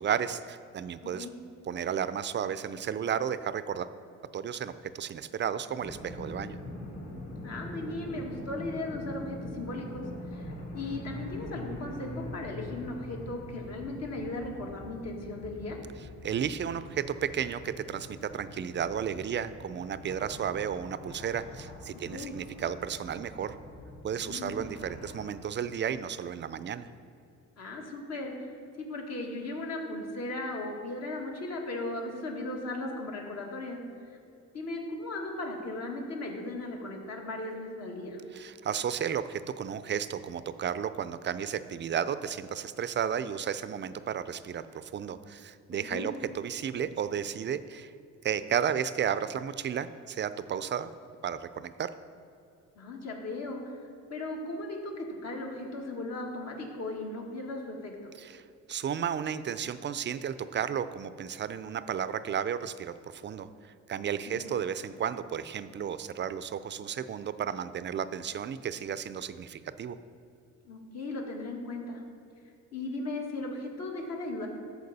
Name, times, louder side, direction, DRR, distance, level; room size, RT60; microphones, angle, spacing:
voice 1, 0.0-1.3 1.7-3.9 4.3-6.6 16.2-23.6 24.0-26.9 38.3-47.9 48.2-50.9 51.2-51.9 58.2-58.4 58.7-70.0, right 8 dB, 40° right, 13 dB, 0.4 m, -33 dB
voice 2, 1.0-1.4 7.4-15.8 22.1-22.3 24.2-24.7 27.6-28.5 28.8-33.8 34.5-38.2 45.9-46.1 52.8-53.7 54.1-58.1 64.3-64.5 70.6-72.0 72.7-74.5, left 2 dB, 60° left, 0 dB, 1.8 m, -37 dB
sound 1, 5.8-25.3, left 1 dB, 85° left, 1.9 m, -43 dB
13.5 x 4.6 x 4.1 m, 2.6 s
cardioid pair, 90°, 30 cm